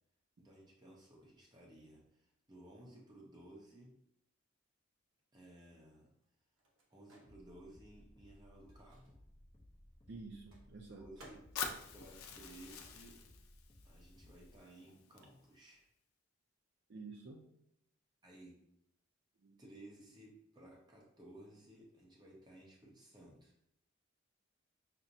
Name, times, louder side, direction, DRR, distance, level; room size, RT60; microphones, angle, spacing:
voice 1, 0.4-4.0 5.3-6.1 6.9-9.2 10.9-11.5 11.9-13.2 13.8-15.9 18.2-18.7 19.6-23.6, right 1 dB, 20° right, -2 dB, 0.7 m, -57 dB
Microwave oven, 5.2-13.4 13.6-15.5, right 1 dB, 80° right, 1.0 m, -66 dB
sound 1, 7.2-14.6, left 1 dB, 25° left, 0.5 m, -61 dB
voice 2, 10.1-11.0 16.9-17.5 19.4-19.6, right 3 dB, 50° right, 0 dB, 0.4 m, -50 dB
Fire, 11.6-15.6, left 6 dB, 85° left, 0.5 m, -46 dB
5.9 x 2.0 x 2.6 m, 0.75 s
head